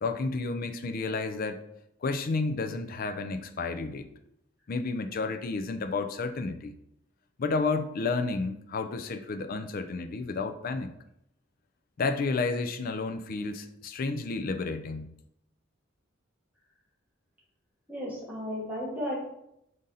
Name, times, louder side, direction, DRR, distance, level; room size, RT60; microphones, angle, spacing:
voice 1, 0.0-1.6 2.0-4.0 4.7-6.7 7.4-10.9 12.0-15.1, left 3 dB, 45° left, 8 dB, 0.4 m, -31 dB
voice 2, 17.9-19.2, equal, 10° right, -6 dB, 1.4 m, -34 dB
5.0 x 3.9 x 2.7 m, 0.78 s
head